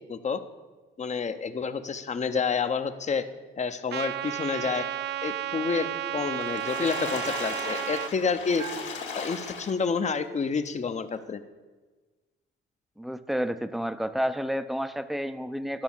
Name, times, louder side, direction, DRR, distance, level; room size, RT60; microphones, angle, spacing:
voice 1, 0.1-0.4 1.0-3.3 3.6-4.9 5.2-5.9 6.1-8.6 9.1-11.4, left 5 dB, 35° left, 10 dB, 0.8 m, -29 dB
Trumpet, 3.9-8.1, right 12 dB, 60° right, 0.4 m, -32 dB
Water / Splash splatter, 6.3-10.1 10.7-10.8 11.1-11.2, left 5 dB, 70° left, 2.0 m, -37 dB
Bell, 8.6-10.2, right 5 dB, 80° right, 0.8 m, -45 dB
voice 2, 13.0-15.8, equal, ahead, 12 dB, 0.5 m, -30 dB
11.5 x 6.0 x 7.2 m, 1.3 s
cardioid pair, 90°, 20 cm